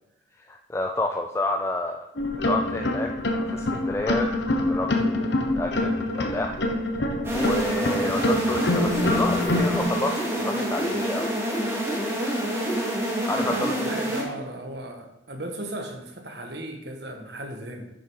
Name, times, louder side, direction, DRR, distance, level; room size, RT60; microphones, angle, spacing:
voice 1, 0.4-2.1 2.4-3.1 3.5-4.3 4.7-11.9 12.7-12.9 13.2-13.7, left 2 dB, 15° left, 3 dB, 0.4 m, -30 dB
sound 1, 2.2-9.8, left 1 dB, 65° left, 1.0 m, -25 dB
sound 2, 7.2-14.2, right 1 dB, 15° right, 2.2 m, -27 dB
voice 2, 13.4-17.9, right 1 dB, 60° right, 3 dB, 1.4 m, -36 dB
10.0 x 6.7 x 4.7 m, 0.87 s
head